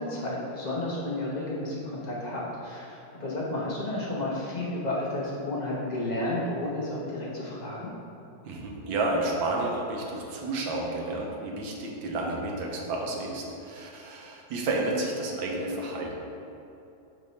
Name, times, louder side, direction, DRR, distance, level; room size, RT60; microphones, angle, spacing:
voice 1, 0.0-7.9, left 1 dB, 30° left, -6 dB, 0.8 m, -32 dB
voice 2, 8.4-16.1, right 2 dB, 85° right, 0 dB, 1.6 m, -31 dB
6.3 x 3.7 x 4.2 m, 2.8 s
omnidirectional pair, 2.1 m